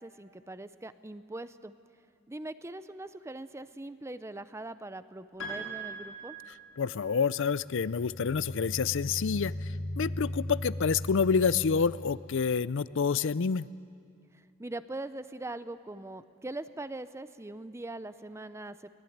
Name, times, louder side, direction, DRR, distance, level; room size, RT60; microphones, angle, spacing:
voice 1, 0.0-1.7 2.3-6.4 14.3-18.9, right 2 dB, 15° right, 13 dB, 0.6 m, -41 dB
Piano, 5.4-7.1, right 3 dB, 80° left, 7.6 m, -41 dB
voice 2, 6.8-13.7, left 5 dB, 65° left, 18 dB, 0.5 m, -28 dB
sound 1, 7.6-12.4, left 1 dB, 30° left, 1.3 m, -38 dB
23.0 x 19.0 x 9.4 m, 2.4 s
head